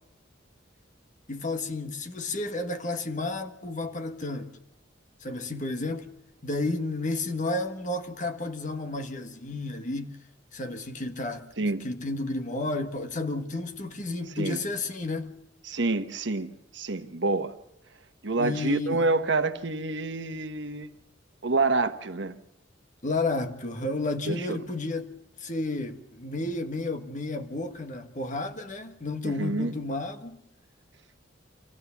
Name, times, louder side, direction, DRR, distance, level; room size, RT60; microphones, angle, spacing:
voice 1, 1.3-4.5 5.2-6.1 6.4-10.2 10.5-15.3 18.4-19.0 23.0-30.4, left 2 dB, 40° left, 1.6 m, -32 dB
voice 2, 15.7-17.6 18.2-20.9 21.4-22.3 24.3-24.6 29.2-29.7, right 3 dB, 65° right, 1.2 m, -27 dB
25.5 x 15.5 x 7.1 m
head